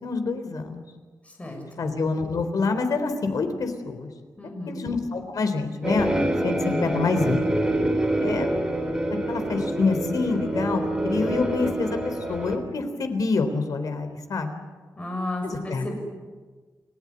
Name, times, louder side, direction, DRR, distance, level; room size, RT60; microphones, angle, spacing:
voice 1, 0.0-0.8 1.8-4.1 4.7-7.4 8.2-8.5 9.3-14.6 15.4-15.9, left 4 dB, 75° left, 7 dB, 3.7 m, -27 dB
voice 2, 1.4-1.8 4.4-4.8 15.0-16.0, left 2 dB, 20° left, 2 dB, 6.6 m, -33 dB
sound 1, 5.8-12.6, right 1 dB, 10° right, 3.2 m, -26 dB
29.0 x 16.5 x 9.9 m, 1.4 s
wide cardioid pair, 175°, 6 cm